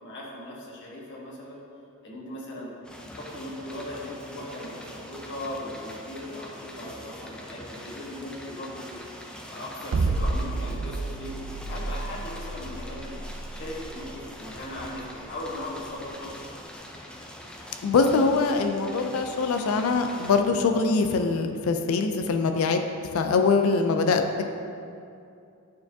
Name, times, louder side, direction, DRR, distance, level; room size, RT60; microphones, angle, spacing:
voice 1, 0.0-1.6 2.0-2.7 3.1-9.0 9.5-13.1 13.5-16.3, left 1 dB, 60° left, -4 dB, 1.2 m, -38 dB
sound 1, 2.8-20.4, equal, 5° left, 0.4 m, -44 dB
sound 2, 9.9-16.1, right 3 dB, 65° right, 0.3 m, -31 dB
voice 2, 17.8-22.8 23.1-24.2, left 4 dB, 75° left, 6 dB, 0.4 m, -23 dB
9.3 x 4.5 x 2.7 m, 2.5 s
head